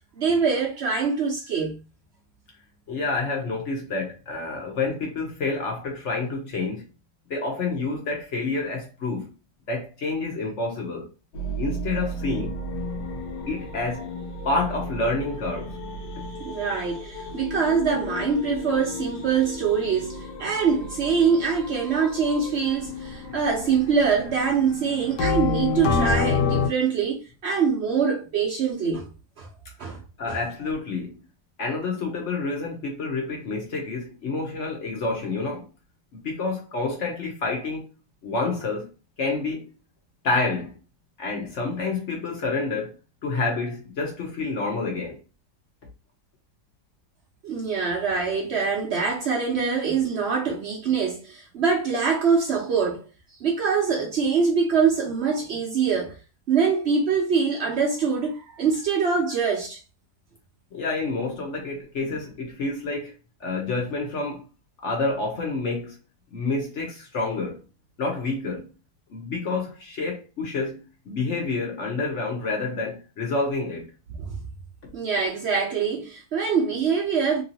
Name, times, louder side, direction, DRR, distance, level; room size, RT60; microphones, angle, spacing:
voice 1, 0.2-1.8 16.4-29.1 29.4-29.5 29.8-30.0 30.3-30.4 47.4-53.1 53.4-56.2 56.5-59.8 74.2-74.4 74.9-77.4, right 5 dB, 65° right, 0.6 m, -24 dB
voice 2, 2.9-6.8 7.3-9.3 9.7-11.1 11.6-12.6 13.5-14.1 14.4-15.8 30.2-31.2 31.6-35.6 36.2-37.9 38.2-38.9 39.2-39.7 40.2-40.7 41.2-42.9 43.2-45.2 60.7-63.1 63.4-64.5 64.8-66.0 66.3-67.6 68.0-68.7 69.1-73.8, left 3 dB, 55° left, 1.0 m, -28 dB
sound 1, 11.3-26.7, left 3 dB, 85° left, 1.2 m, -30 dB
2.9 x 2.7 x 2.7 m
omnidirectional pair, 1.7 m